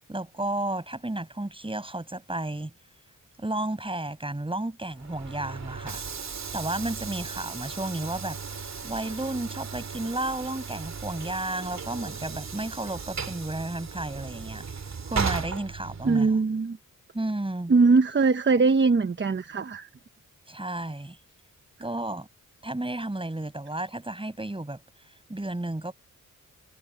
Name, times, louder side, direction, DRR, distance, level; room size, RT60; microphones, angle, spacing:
voice 1, 0.1-2.7 3.4-6.0 6.5-14.7 15.0-16.4 17.1-17.7 20.5-21.2 21.8-22.3 22.6-24.8 25.3-25.9, right 1 dB, 15° right, 6.7 m, -32 dB
Train / Sliding door, 4.9-16.4, right 5 dB, 55° right, 2.5 m, -36 dB
voice 2, 16.0-16.8 17.7-19.9, right 4 dB, 35° right, 1.1 m, -21 dB
cardioid pair, 75°, 33 cm